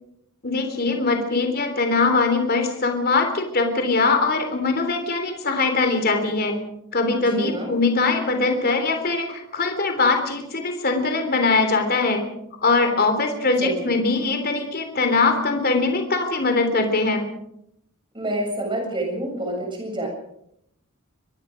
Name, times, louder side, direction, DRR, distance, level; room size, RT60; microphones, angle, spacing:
voice 1, 0.4-6.6 6.9-12.2 12.6-17.2, left 3 dB, 45° left, 5 dB, 3.4 m, -22 dB
voice 2, 7.2-7.8 13.6-13.9 18.1-20.1, right 1 dB, 20° right, 1 dB, 7.7 m, -28 dB
25.5 x 21.5 x 5.1 m, 0.76 s
head